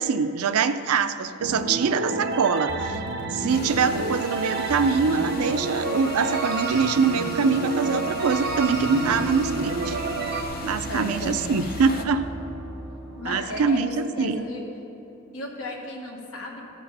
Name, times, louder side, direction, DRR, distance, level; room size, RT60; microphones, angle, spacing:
voice 1, 0.0-3.0 3.3-10.0 10.6-12.3 13.3-14.5, right 5 dB, 90° right, 11 dB, 0.4 m, -24 dB
sound 1, 1.4-10.4, right 2 dB, 50° right, 0.8 m, -29 dB
sound 2, 3.5-12.0, left 1 dB, 45° left, 0.7 m, -39 dB
sound 3, 8.2-13.3, right 1 dB, 5° right, 2.4 m, -37 dB
voice 2, 10.9-11.4 13.1-14.7 15.3-16.6, left 1 dB, 80° left, 0 dB, 1.5 m, -34 dB
14.0 x 5.3 x 5.3 m, 2.9 s
head